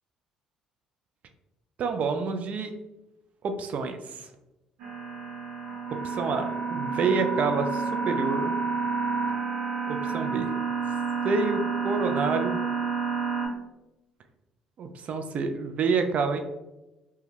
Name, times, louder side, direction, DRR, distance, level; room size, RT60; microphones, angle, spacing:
voice 1, 1.8-2.7 3.4-4.3 5.9-8.6 9.9-10.6 11.2-12.6 14.8-16.4, right 4 dB, 50° right, 7 dB, 0.3 m, -28 dB
sound 1, 4.8-13.5, right 5 dB, 70° right, 0.7 m, -29 dB
2.2 x 2.1 x 3.2 m, 0.97 s
hypercardioid pair, 55°, 3 cm